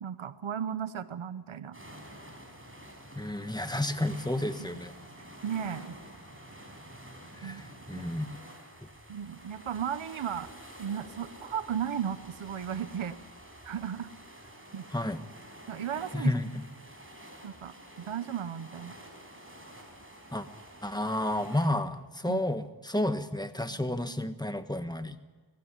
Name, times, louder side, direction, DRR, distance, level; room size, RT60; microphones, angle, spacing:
voice 1, 0.0-1.8 4.6-4.7 5.2-5.9 7.4-7.6 7.9-8.1 9.1-10.5 10.8-13.2 13.6-14.1 14.7-14.8 15.7-16.3 17.4-19.0 22.3-22.4 23.7-24.0, right 8 dB, 85° right, 14 dB, 0.8 m, -35 dB
sound 1, 1.7-21.7, right 1 dB, 25° right, 4.7 m, -49 dB
voice 2, 3.1-4.9 7.3-8.3 14.9-15.2 16.1-16.6 20.3-20.5 20.8-25.2, left 1 dB, 10° left, 9 dB, 1.4 m, -31 dB
19.5 x 15.5 x 9.9 m, 1.4 s
cardioid pair, 45°, 47 cm